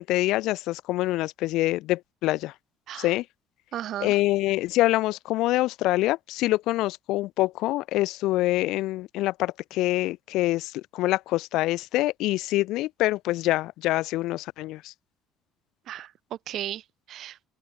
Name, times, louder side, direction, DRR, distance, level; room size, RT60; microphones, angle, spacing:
voice 1, 0.0-2.5 2.9-3.3 4.0-14.9, left 17 dB, 55° left, 0.5 m, -25 dB
voice 2, 3.7-4.1 15.9-17.5, right 12 dB, 50° right, 2.5 m, -35 dB
open air
figure-of-eight pair, 55°, 0 cm